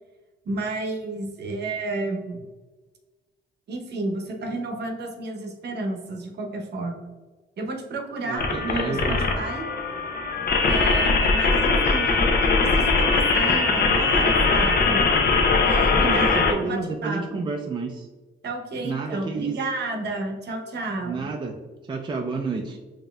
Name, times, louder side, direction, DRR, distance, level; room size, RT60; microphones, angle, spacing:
voice 1, 0.4-2.4 3.7-7.1 7.6-9.7 10.6-15.0 15.6-17.5 18.4-21.3, right 2 dB, 60° right, 3 dB, 0.8 m, -31 dB
voice 2, 8.2-9.2 15.9-18.1 18.8-19.6 21.0-21.6 21.8-22.8, right 4 dB, 25° right, 2 dB, 0.4 m, -30 dB
sound 1, 8.4-16.5, left 4 dB, 50° left, 0.7 m, -21 dB
5.1 x 2.7 x 2.3 m, 1.3 s
cardioid pair, 90°, 20 cm